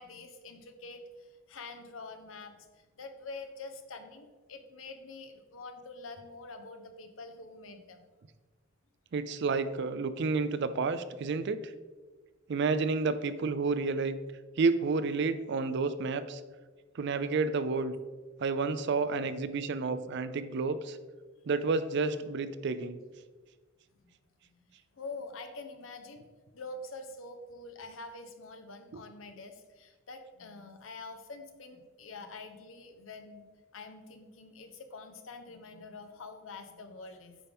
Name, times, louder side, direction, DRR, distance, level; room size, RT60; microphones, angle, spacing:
voice 1, 0.0-8.1 24.0-24.1 24.5-26.3 26.5-33.5 33.7-37.4, left 3 dB, 85° left, 6 dB, 0.9 m, -46 dB
voice 2, 9.1-11.6 12.5-14.2 14.6-16.4 17.0-17.9 18.4-21.0 21.5-23.0, right 4 dB, 60° right, 12 dB, 0.5 m, -30 dB
8.7 x 5.2 x 3.5 m, 1.3 s
head